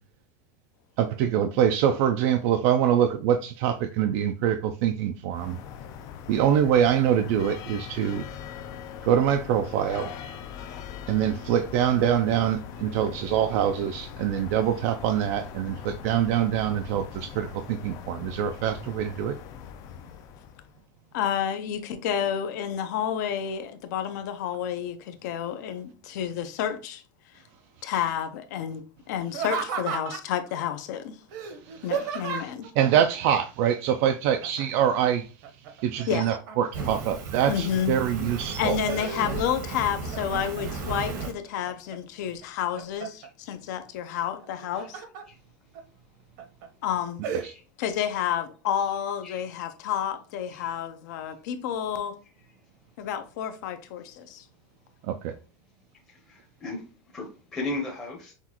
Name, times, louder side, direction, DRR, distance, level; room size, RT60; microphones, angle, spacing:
voice 1, 1.0-5.6 6.3-8.3 9.0-10.1 11.1-19.3 31.6-35.3 35.8-38.8 47.4-47.5 55.0-55.3, right 9 dB, 45° right, 0.3 m, -24 dB
sound 1, 5.3-20.8, left 8 dB, 35° left, 0.4 m, -41 dB
voice 2, 21.1-27.0 27.8-31.2 31.8-32.7 36.1-36.3 37.5-37.9 38.2-38.3 38.6-45.0 46.8-47.2 47.8-52.1 53.0-54.4, left 9 dB, 60° left, 0.7 m, -30 dB
Laughter, 29.3-30.4 31.3-32.7 34.4-34.9 35.2-36.8 37.4-38.0 38.4-39.7 40.1-40.7 41.2-42.0 42.4-43.3 44.4-45.2 45.7-45.8 46.4-46.7 47.2-47.5, right 6 dB, 60° right, 0.9 m, -34 dB
Fire, 36.7-41.3, right 3 dB, 90° right, 1.6 m, -35 dB
voice 3, 49.2-49.6 50.5-50.7 51.3-51.4 52.5-52.7 55.9-58.3, left 2 dB, 10° left, 0.8 m, -37 dB
5.8 x 2.4 x 2.9 m
supercardioid pair, 170°, 11 cm